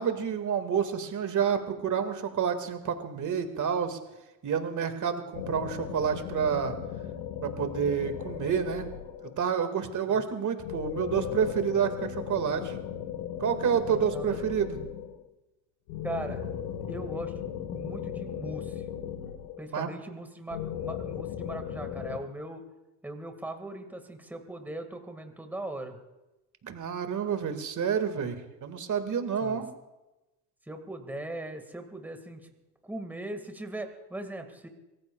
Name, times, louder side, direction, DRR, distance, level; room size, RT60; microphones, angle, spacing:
voice 1, 0.0-4.0 4.4-6.8 7.4-8.9 9.4-12.8 13.4-14.8 19.7-19.9 26.6-29.7, right 7 dB, 35° right, 8 dB, 2.0 m, -29 dB
sound 1, 5.3-9.5 10.6-15.3 15.9-19.9 20.5-22.2, left 10 dB, 80° left, 1.6 m, -37 dB
voice 2, 13.9-14.5 16.0-16.5 16.9-19.1 19.6-22.6 23.0-26.0 29.4-29.6 30.7-32.5 32.8-34.7, right 1 dB, 5° right, 6 dB, 1.9 m, -39 dB
24.5 x 17.5 x 2.3 m, 1.0 s
supercardioid pair, 90°, 49 cm